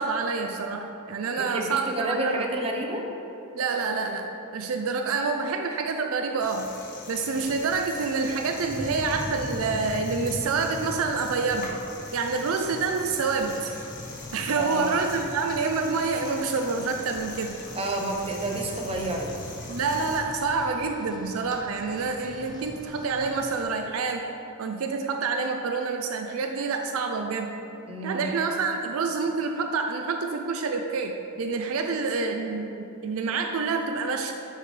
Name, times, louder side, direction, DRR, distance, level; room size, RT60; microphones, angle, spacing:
voice 1, 0.0-2.5 3.5-6.7 7.1-11.8 12.1-13.7 14.3-17.6 19.7-24.3 24.6-27.6 28.0-34.3, right 4 dB, 70° right, 4 dB, 0.5 m, -27 dB
voice 2, 1.4-3.1 14.6-15.0 17.7-19.3 27.9-28.2, right 1 dB, 25° right, 1 dB, 0.8 m, -30 dB
sound 1, 6.4-20.2, left 2 dB, 40° left, 1.2 m, -43 dB
Rain, 7.3-23.6, left 1 dB, 20° left, 0.8 m, -41 dB
9.7 x 5.5 x 3.3 m, 2.8 s
head